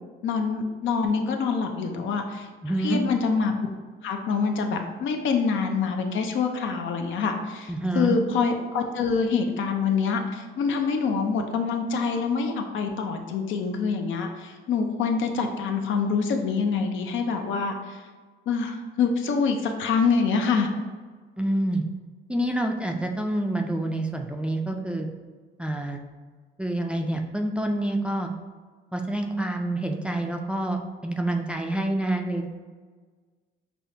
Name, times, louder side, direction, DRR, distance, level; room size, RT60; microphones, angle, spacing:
voice 1, 0.2-2.5 2.8-3.5 4.0-18.0 18.5-20.7, left 5 dB, 75° left, 4 dB, 0.5 m, -25 dB
voice 2, 2.6-3.0 7.7-8.2 21.4-21.8 22.3-25.1 25.6-26.0 26.6-28.3 28.9-32.7, right 1 dB, 5° right, 3 dB, 0.3 m, -27 dB
5.5 x 2.1 x 2.7 m, 1.5 s
cardioid pair, 90°, 20 cm